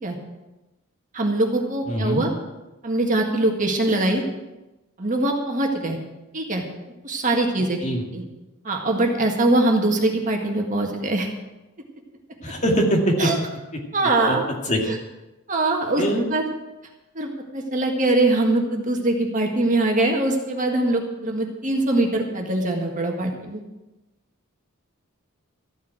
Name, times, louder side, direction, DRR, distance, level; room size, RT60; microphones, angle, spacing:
voice 1, 1.1-2.3 2.8-4.2 5.0-6.0 6.3-6.6 7.0-7.8 8.1-8.2 8.6-11.3 13.2-13.4 13.9-14.4 14.8-15.0 15.5-16.0 16.3-16.4 17.2-23.6, right 2 dB, 35° right, 2 dB, 1.8 m, -22 dB
voice 2, 1.9-2.2 7.8-8.0 12.4-13.3 13.7-13.8 14.3-14.4 14.7-14.8 16.0-16.3, equal, 30° left, 0 dB, 2.2 m, -22 dB
14.0 x 7.3 x 9.0 m, 1.0 s
head